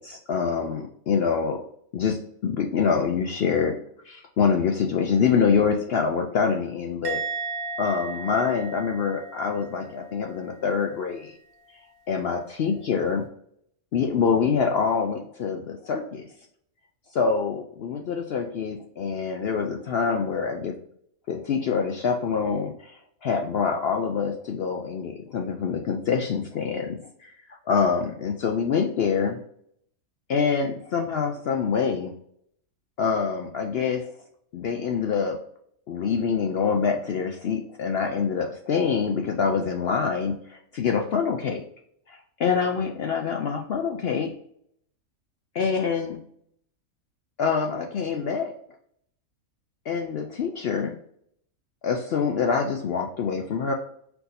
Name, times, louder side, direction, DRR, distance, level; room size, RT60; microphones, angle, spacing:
voice 1, 0.0-1.6 1.9-3.8 4.0-7.2 7.8-11.3 12.1-13.3 13.9-16.2 17.1-20.7 21.3-27.4 27.7-29.4 30.3-32.1 33.0-34.1 34.5-35.4 35.9-41.6 42.1-44.3 45.5-46.2 47.4-48.5 49.9-50.9 51.8-53.7, left 6 dB, 65° left, 2 dB, 0.6 m, -25 dB
Musical instrument, 7.0-10.4 10.7-11.1, right 4 dB, 80° right, 1.2 m, -35 dB
4.5 x 2.6 x 4.0 m, 0.66 s
omnidirectional pair, 1.5 m